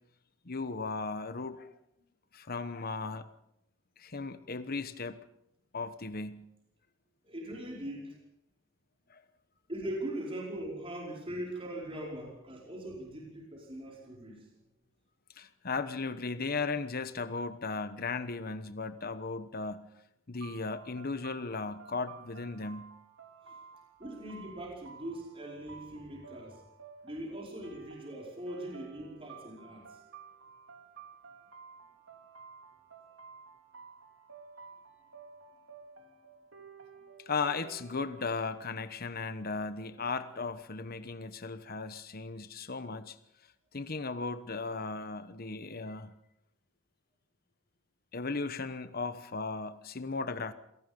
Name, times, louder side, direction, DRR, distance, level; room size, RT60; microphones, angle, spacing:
voice 1, 0.4-1.7 2.3-3.3 4.0-5.2 5.7-6.5 9.1-9.2 15.4-19.9 20.3-22.9 37.3-43.2 43.7-46.1 48.1-50.5, left 4 dB, 50° left, 11 dB, 1.1 m, -36 dB
voice 2, 7.2-8.2 9.7-14.5 24.0-26.6 27.0-30.0 36.0-36.1, right 1 dB, 30° right, -2 dB, 5.1 m, -41 dB
sound 1, 20.4-38.2, right 6 dB, 80° right, 3.5 m, -53 dB
27.5 x 18.0 x 5.4 m, 0.79 s
head